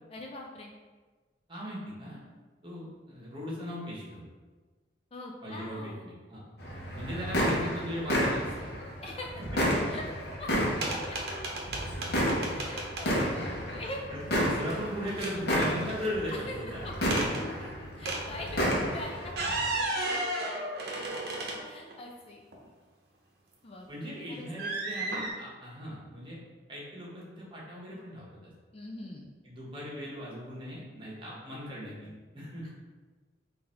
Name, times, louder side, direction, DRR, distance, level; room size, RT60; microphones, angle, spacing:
voice 1, 0.1-0.7 5.1-6.0 9.0-9.3 9.9-10.0 10.4-10.5 10.8-11.2 12.5-14.1 16.3-16.6 16.8-17.1 18.0-19.3 19.6-20.0 21.6-22.4 23.6-24.7 28.7-29.3, left 2 dB, 30° left, 0 dB, 0.4 m, -43 dB
voice 2, 1.5-2.2 2.6-4.2 5.4-6.4 6.9-8.7 9.5-9.6 14.1-16.9 17.2-17.7 23.9-26.4 26.7-28.5 29.4-32.7, equal, 25° right, -5 dB, 1.2 m, -38 dB
sound 1, 6.6-19.8, equal, 60° left, 0.9 m, -31 dB
sound 2, 10.8-13.1 14.4-14.8 15.1-16.4 17.1-17.4 18.0-18.3 19.2-22.0 22.5-22.6 24.6-25.3, right 2 dB, 60° right, 0.8 m, -34 dB
3.9 x 2.6 x 4.3 m, 1.4 s
head